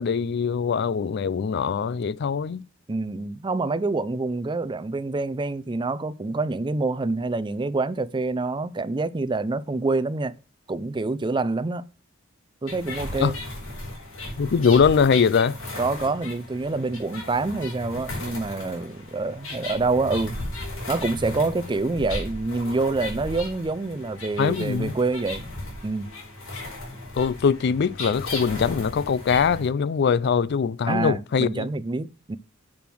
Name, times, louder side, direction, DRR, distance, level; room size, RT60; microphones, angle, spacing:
voice 1, 0.0-2.6 13.2-13.3 14.4-15.6 24.4-24.9 27.1-31.7, left 6 dB, 55° left, 0.4 m, -22 dB
voice 2, 2.9-10.3 10.7-11.9 12.6-13.4 15.8-20.4 20.9-25.4 25.8-26.1 30.9-32.4, right 3 dB, 25° right, 0.4 m, -26 dB
sound 1, 12.7-29.7, left 2 dB, 85° left, 4.8 m, -36 dB
7.8 x 6.9 x 6.1 m
head